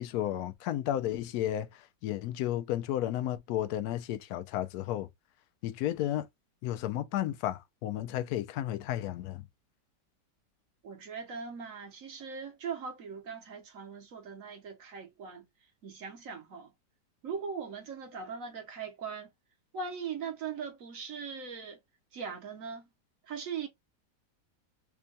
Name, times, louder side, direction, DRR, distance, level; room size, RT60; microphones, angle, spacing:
voice 1, 0.0-5.1 5.6-6.3 6.6-9.5, left 12 dB, 70° left, 1.0 m, -33 dB
voice 2, 10.8-15.5 15.8-16.7 17.2-19.3 19.7-21.8 22.1-22.9 23.2-23.7, right 6 dB, 60° right, 1.0 m, -40 dB
3.5 x 2.2 x 3.8 m
omnidirectional pair, 1.8 m